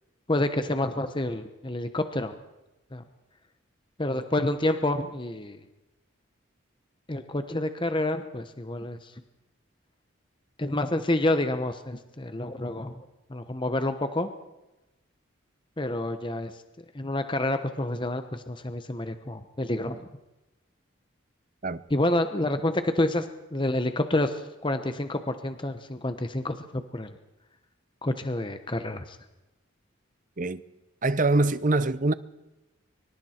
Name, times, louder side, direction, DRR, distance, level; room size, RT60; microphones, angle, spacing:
voice 1, 0.3-2.3 2.9-3.0 4.0-5.6 7.1-9.1 10.6-12.9 13.3-14.3 15.8-16.5 16.9-20.1 21.9-27.1 28.0-29.2, left 1 dB, 25° left, 1.0 m, -28 dB
voice 2, 31.0-32.1, right 2 dB, 40° right, 0.8 m, -24 dB
25.0 x 24.5 x 4.5 m
head